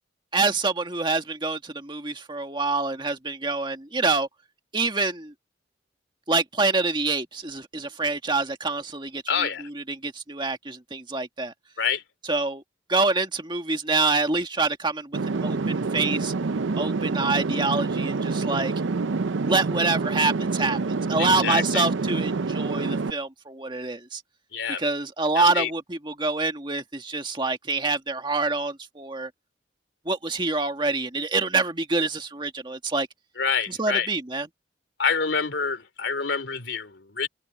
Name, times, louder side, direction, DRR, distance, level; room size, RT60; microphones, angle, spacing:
voice 1, 0.3-4.3 4.7-5.3 6.3-11.5 12.3-12.6 12.9-16.3 16.8-18.7 19.4-20.8 21.1-24.2 24.8-29.3 30.1-33.1 33.7-34.5, right 3 dB, 25° right, 1.8 m, -26 dB
voice 2, 9.3-9.7 11.8-12.0 21.2-21.8 24.5-24.8 25.3-25.7 33.4-34.1 35.0-37.3, left 6 dB, 75° left, 2.8 m, -27 dB
sound 1, 15.1-23.1, right 4 dB, 85° right, 0.6 m, -27 dB
head